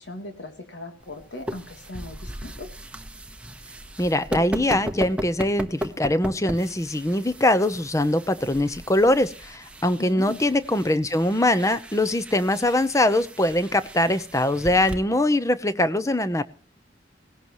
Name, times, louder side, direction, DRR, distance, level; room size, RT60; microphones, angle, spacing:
voice 1, 0.0-2.7 10.0-10.4, left 1 dB, 80° left, 5 dB, 3.1 m, -38 dB
sound 1, 1.0-15.0, equal, 5° right, 1.0 m, -37 dB
voice 2, 4.0-16.4, left 1 dB, 15° left, 13 dB, 0.8 m, -22 dB
18.0 x 17.0 x 3.1 m, 0.40 s
head